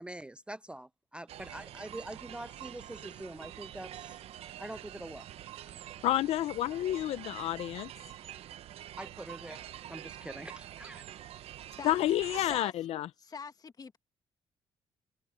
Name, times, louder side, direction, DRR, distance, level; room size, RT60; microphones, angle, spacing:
voice 1, 0.0-4.2 4.6-5.3 9.0-9.6 9.9-11.0, right 1 dB, 10° right, 0.5 m, -44 dB
sound 1, 1.3-12.6, right 12 dB, 75° right, 0.7 m, -46 dB
voice 2, 6.0-7.9 11.8-13.1, left 13 dB, 80° left, 0.5 m, -30 dB
voice 3, 11.8-12.7 13.2-14.0, left 5 dB, 40° left, 1.7 m, -44 dB
cardioid pair, 85°, 10 cm